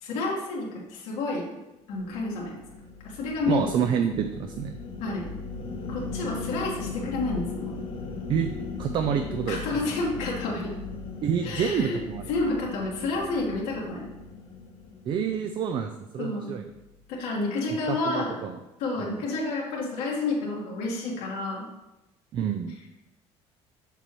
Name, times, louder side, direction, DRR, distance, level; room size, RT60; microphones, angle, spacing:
voice 1, 0.0-1.5 1.9-2.6 3.0-3.9 5.0-5.3 5.9-7.7 9.5-10.7 11.4-12.0 12.3-14.1 16.2-16.5 17.1-18.4 18.8-21.7, left 2 dB, 80° left, -4 dB, 1.5 m, -30 dB
sound 1, 1.9-15.5, left 4 dB, 50° left, 0.8 m, -38 dB
voice 2, 3.5-4.8 8.3-8.5 8.8-9.6 11.2-12.3 15.1-16.7 17.9-18.6 19.0-19.2 22.3-22.7, right 7 dB, 45° right, 7 dB, 0.4 m, -28 dB
6.7 x 6.2 x 3.0 m, 0.98 s
cardioid pair, 150°, 12 cm